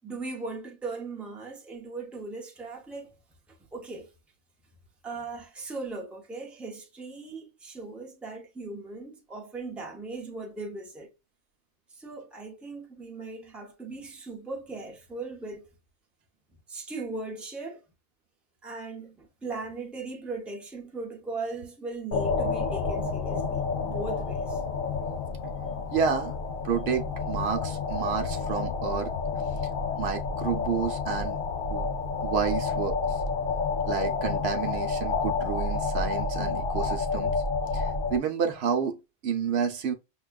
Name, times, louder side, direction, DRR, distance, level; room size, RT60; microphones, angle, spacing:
voice 1, 0.0-3.1 3.7-4.1 5.0-11.1 11.9-15.7 16.7-17.8 18.6-24.6, right 3 dB, ahead, 0.7 m, -38 dB
sound 1, 22.1-38.2, left 4 dB, 60° left, 0.8 m, -29 dB
voice 2, 25.9-26.4 26.6-29.1 30.0-31.4 31.7-31.9 32.2-33.2 33.9-37.3 37.7-39.0 39.2-39.9, right 7 dB, 70° right, 0.9 m, -30 dB
5.9 x 2.3 x 2.2 m
omnidirectional pair, 1.1 m